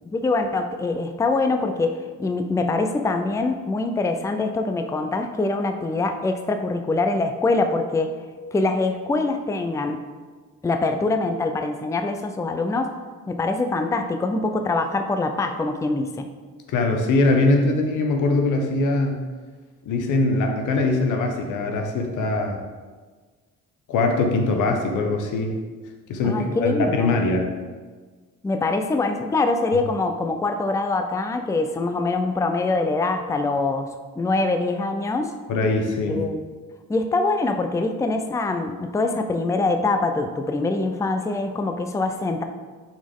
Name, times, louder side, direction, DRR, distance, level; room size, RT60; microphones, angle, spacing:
voice 1, 0.1-8.1 8.5-10.0 10.6-12.9 13.3-16.3 26.2-27.2 28.4-33.9 34.2-35.3 36.1-36.5 36.9-42.4, left 3 dB, 10° left, 6 dB, 0.4 m, -24 dB
voice 2, 16.7-19.2 19.9-22.6 23.9-25.5 26.1-27.5 35.5-36.2, left 2 dB, 85° left, 3 dB, 0.9 m, -22 dB
6.2 x 4.3 x 3.6 m, 1.4 s
cardioid pair, 90°, 30 cm